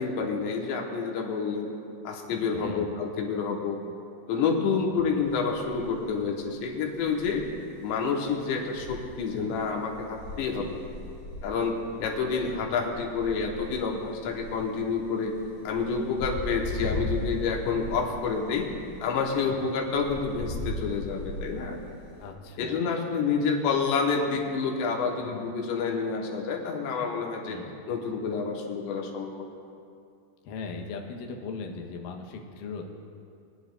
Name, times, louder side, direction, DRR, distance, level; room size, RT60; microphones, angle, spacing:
voice 1, 0.0-1.7 2.0-3.8 4.3-7.4 7.8-10.8 11.4-15.4 15.6-18.7 19.0-21.8 22.6-27.6 27.9-29.5, left 5 dB, 90° left, 1 dB, 3.3 m, -28 dB
voice 2, 2.5-2.9 10.5-10.7 22.2-22.8 27.5-27.7 30.4-32.9, left 4 dB, 70° left, 1 dB, 2.2 m, -38 dB
sound 1, 5.2-22.3, left 1 dB, 55° left, 3.4 m, -39 dB
23.0 x 10.5 x 2.4 m, 2.5 s
omnidirectional pair, 4.9 m